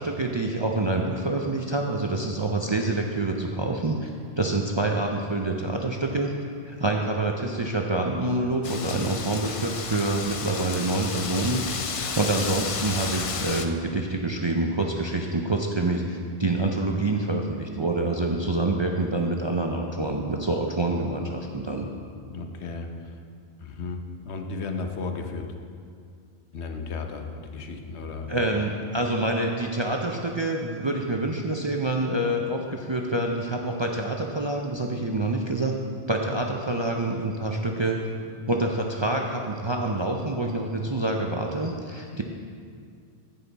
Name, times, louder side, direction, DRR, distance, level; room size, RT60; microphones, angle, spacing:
voice 1, 0.0-4.1 4.4-6.3 6.6-21.9 28.3-35.7 36.1-38.0 38.5-42.2, right 2 dB, 35° right, 1 dB, 0.4 m, -26 dB
Wind, 8.6-13.7, left 5 dB, 50° left, 0.4 m, -32 dB
voice 2, 22.3-23.2 23.6-25.6 26.5-28.5, left 4 dB, 80° left, 4 dB, 1.1 m, -34 dB
14.5 x 5.6 x 4.0 m, 2.3 s
omnidirectional pair, 1.1 m